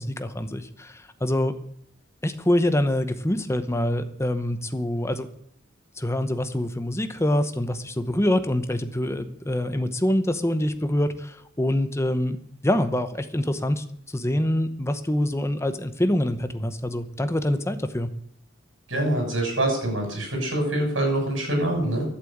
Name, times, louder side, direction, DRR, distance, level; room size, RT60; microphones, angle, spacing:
voice 1, 0.0-1.5 2.2-5.3 6.0-12.4 12.6-18.1, left 1 dB, 15° left, 10 dB, 0.9 m, -25 dB
voice 2, 18.9-22.0, right 1 dB, 70° right, 2 dB, 6.4 m, -25 dB
12.0 x 7.6 x 8.7 m, 0.71 s
head